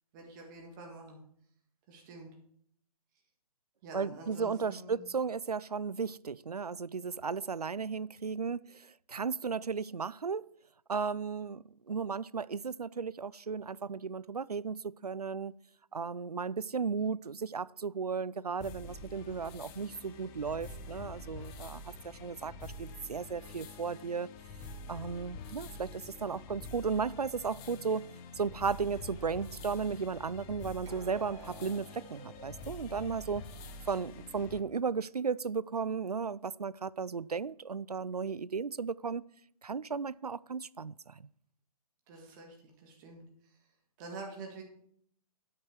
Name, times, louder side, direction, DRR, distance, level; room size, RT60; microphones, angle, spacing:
voice 1, 0.1-1.2 1.9-2.3 3.8-5.0 42.1-43.6 44.0-44.6, right 3 dB, 30° right, 1 dB, 1.8 m, -47 dB
voice 2, 3.9-10.4 10.9-15.5 15.9-24.3 24.9-28.1 28.4-33.5 33.9-39.2 39.6-41.2, right 5 dB, 85° right, 21 dB, 0.4 m, -35 dB
sound 1, 18.4-21.5 30.8-34.8 35.1-35.3 35.9-36.0, right 4 dB, 50° right, 1.8 m, -57 dB
sound 2, 18.6-34.6, left 2 dB, 20° left, 0.9 m, -47 dB
9.2 x 8.8 x 4.7 m, 0.67 s
figure-of-eight pair, 130°, 19 cm